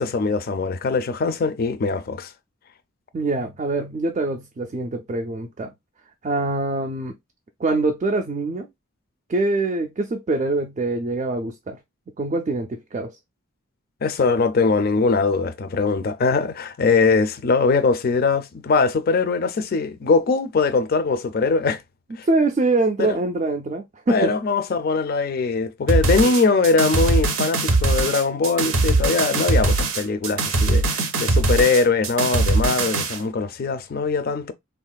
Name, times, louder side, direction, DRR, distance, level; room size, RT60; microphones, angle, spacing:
voice 1, 0.0-2.3 14.0-21.8 22.2-22.3 23.0-23.2 24.1-34.5, left 4 dB, 45° left, 0.4 m, -21 dB
voice 2, 3.1-5.7 6.2-7.1 7.6-8.7 9.3-11.8 12.2-13.1 22.3-24.3, right 2 dB, 30° right, 0.3 m, -24 dB
sound 1, 25.9-33.2, right 2 dB, 75° right, 0.6 m, -21 dB
3.6 x 2.4 x 2.2 m
head